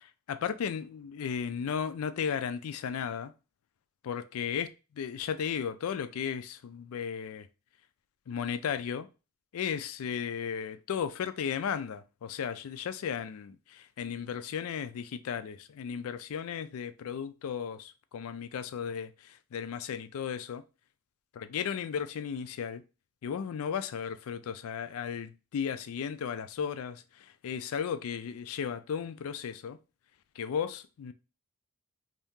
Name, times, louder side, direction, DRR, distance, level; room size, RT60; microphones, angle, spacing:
voice 1, 0.3-3.3 4.0-7.5 8.3-9.1 9.5-20.6 21.4-22.8 23.2-29.8 30.4-31.1, left 7 dB, 75° left, 0.3 m, -35 dB
2.7 x 2.7 x 3.5 m
head